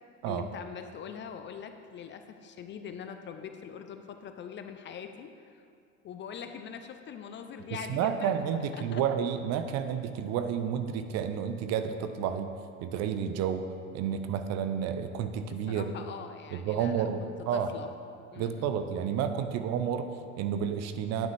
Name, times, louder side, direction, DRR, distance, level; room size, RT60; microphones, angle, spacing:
voice 1, 0.3-5.6 6.0-8.4 8.7-9.0 15.7-17.9 18.3-18.7, left 7 dB, 30° left, 7 dB, 0.5 m, -43 dB
voice 2, 7.7-12.5 12.8-13.7 13.9-16.0 16.5-17.7 18.4-21.3, right 8 dB, 40° right, 9 dB, 0.6 m, -31 dB
9.9 x 8.9 x 3.4 m, 2.4 s
figure-of-eight pair, 75°, 41 cm